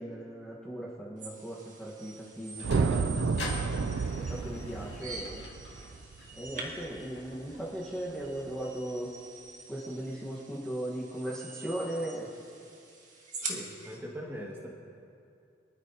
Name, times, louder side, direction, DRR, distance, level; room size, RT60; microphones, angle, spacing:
voice 1, 0.0-3.1 3.5-3.9 4.1-5.4 6.4-9.1 9.7-12.3, right 1 dB, 5° left, -7 dB, 1.5 m, -38 dB
sound 1, 1.2-14.0, right 3 dB, 45° right, 1.8 m, -45 dB
Sliding door, 2.1-8.7, left 2 dB, 65° left, 2.2 m, -46 dB
sound 2, 2.6-7.0, right 4 dB, 80° right, 0.4 m, -31 dB
voice 2, 13.4-14.7, equal, 10° right, -3 dB, 2.1 m, -41 dB
24.0 x 12.5 x 2.9 m, 2.4 s
head